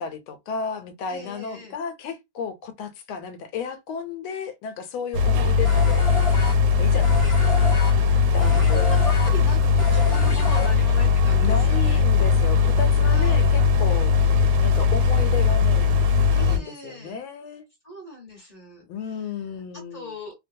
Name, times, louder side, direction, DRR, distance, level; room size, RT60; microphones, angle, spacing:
voice 1, 0.0-6.1 6.6-7.5 8.3-8.9 10.4-10.5 11.4-14.3 14.6-16.1 16.3-17.6 18.9-20.1, left 6 dB, 85° left, 1.4 m, -33 dB
voice 2, 1.1-1.7 8.4-12.0 13.1-13.4 16.3-17.2 17.8-18.8 19.9-20.3, left 1 dB, 25° left, 1.0 m, -38 dB
sound 1, 5.1-16.6, left 5 dB, 90° right, 1.4 m, -19 dB
sound 2, 5.6-11.1, left 3 dB, 60° left, 0.6 m, -32 dB
3.2 x 2.2 x 2.6 m
omnidirectional pair, 2.2 m